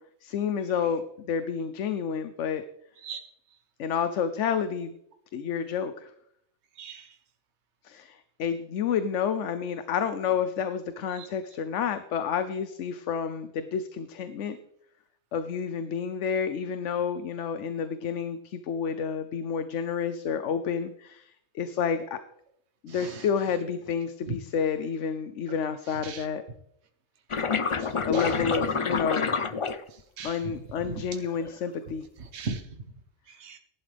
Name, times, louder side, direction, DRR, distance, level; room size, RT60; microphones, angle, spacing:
voice 1, 0.2-2.6 3.8-4.9 5.3-6.1 7.8-14.6 15.3-22.2 22.8-26.4 28.0-29.3 30.2-32.1, left 7 dB, 70° left, 10 dB, 1.0 m, -30 dB
voice 2, 6.8-7.1 11.1-11.3 22.9-23.3 24.3-24.4 26.0-26.3 27.8-28.3 30.2-30.5 30.8-31.0 32.2-32.6 33.3-33.6, right 4 dB, 60° right, 5 dB, 1.4 m, -38 dB
sound 1, 27.3-30.3 31.1-31.6, left 5 dB, 40° left, 0.4 m, -28 dB
16.0 x 11.0 x 3.4 m, 0.74 s
omnidirectional pair, 1.3 m